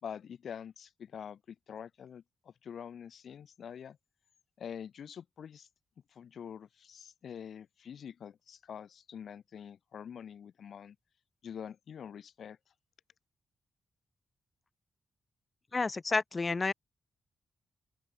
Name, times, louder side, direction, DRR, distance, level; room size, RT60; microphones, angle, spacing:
voice 1, 0.0-4.0 4.6-5.7 6.1-11.0 11.4-12.6, left 8 dB, 70° left, 2.6 m, -46 dB
voice 2, 15.7-16.7, left 3 dB, 30° left, 0.4 m, -30 dB
open air
wide cardioid pair, 125°, 0 cm